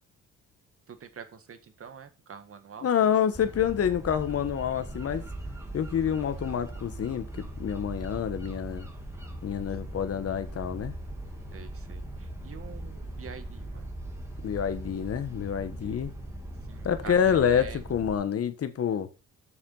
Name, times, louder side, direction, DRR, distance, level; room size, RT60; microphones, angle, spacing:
voice 1, 0.9-2.9 11.5-13.9 15.8-16.1 16.7-17.8, right 7 dB, 45° right, 1.7 m, -46 dB
voice 2, 2.8-5.2 5.7-8.9 9.4-10.9 14.4-16.1 16.8-19.1, left 8 dB, 50° left, 1.4 m, -27 dB
sound 1, 3.3-18.2, right 1 dB, 10° right, 3.0 m, -40 dB
7.1 x 7.0 x 5.5 m
cardioid pair, 90°, 30 cm